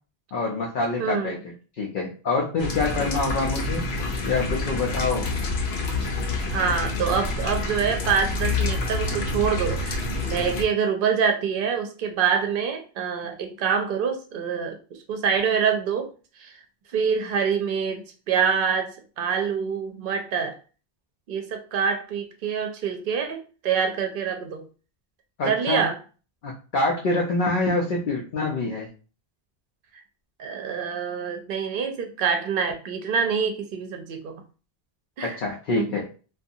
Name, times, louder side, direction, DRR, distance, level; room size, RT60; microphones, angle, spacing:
voice 1, 0.3-3.9 4.2-5.3 25.4-25.8 26.4-28.9 35.2-36.1, left 3 dB, 60° left, -1 dB, 0.7 m, -26 dB
voice 2, 1.0-1.4 6.5-14.8 15.1-16.1 16.4-16.6 16.9-20.6 21.3-24.6 25.4-26.0 30.4-34.3 35.2-35.4 35.7-35.8, right 6 dB, 65° right, 5 dB, 0.7 m, -26 dB
sound 1, 2.6-10.6, left 3 dB, 80° left, 0.9 m, -28 dB
2.5 x 2.3 x 2.7 m, 0.36 s
omnidirectional pair, 1.1 m